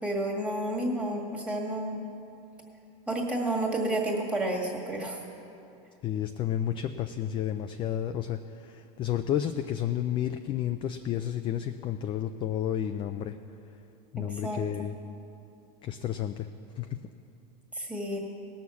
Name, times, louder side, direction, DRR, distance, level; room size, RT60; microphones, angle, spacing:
voice 1, 0.0-2.0 3.1-5.2 14.3-14.6 17.7-18.2, right 1 dB, 5° right, -2 dB, 1.8 m, -30 dB
voice 2, 6.0-13.4 14.1-15.0 15.8-16.5 16.8-16.9, left 10 dB, 25° left, 7 dB, 0.3 m, -31 dB
18.0 x 6.3 x 7.0 m, 2.8 s
supercardioid pair, 140°, 20 cm